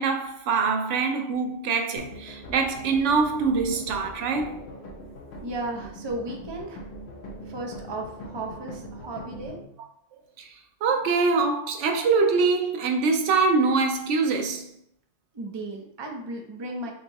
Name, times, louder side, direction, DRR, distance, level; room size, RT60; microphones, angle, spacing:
voice 1, 0.0-4.6 10.4-10.6 10.8-14.7, right 4 dB, 85° right, 1.0 m, -24 dB
sound 1, 2.0-9.6, equal, 65° left, 1.0 m, -42 dB
voice 2, 5.4-6.9 7.5-9.6 15.3-16.9, right 2 dB, 30° right, 0.5 m, -35 dB
4.4 x 3.7 x 2.9 m
omnidirectional pair, 1.2 m